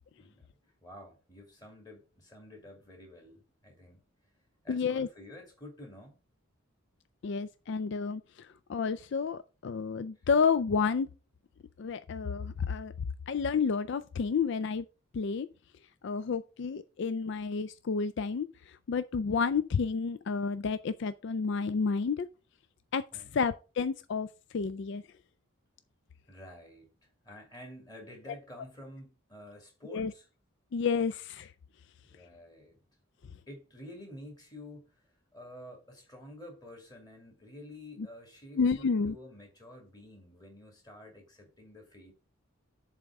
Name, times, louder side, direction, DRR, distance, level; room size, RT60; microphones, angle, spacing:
voice 1, 0.8-4.0 4.6-6.2 10.2-10.3 16.9-17.1 23.1-23.4 26.3-30.3 32.0-32.8 33.5-42.1, left 1 dB, 20° left, 2.4 m, -50 dB
voice 2, 4.7-5.1 7.2-11.1 11.8-12.9 13.3-14.9 15.1-15.5 16.0-22.3 22.9-24.3 24.5-25.0 29.9-30.1 30.7-31.5 38.6-39.2, left 5 dB, 55° left, 0.3 m, -30 dB
7.4 x 3.5 x 6.0 m
head